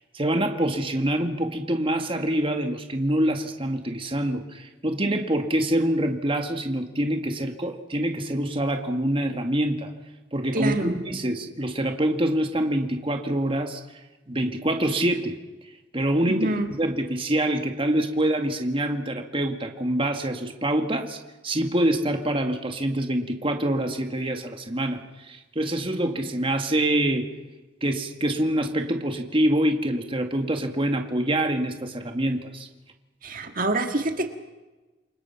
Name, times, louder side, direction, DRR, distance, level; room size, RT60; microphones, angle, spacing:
voice 1, 0.1-9.9 10.3-13.8 14.3-15.4 15.9-21.2 21.4-27.3 27.8-32.7, right 1 dB, 30° right, 5 dB, 2.0 m, -25 dB
voice 2, 10.5-10.9 16.3-16.7 33.2-34.3, right 2 dB, 50° right, 5 dB, 1.8 m, -26 dB
28.5 x 24.5 x 5.8 m, 1.2 s
head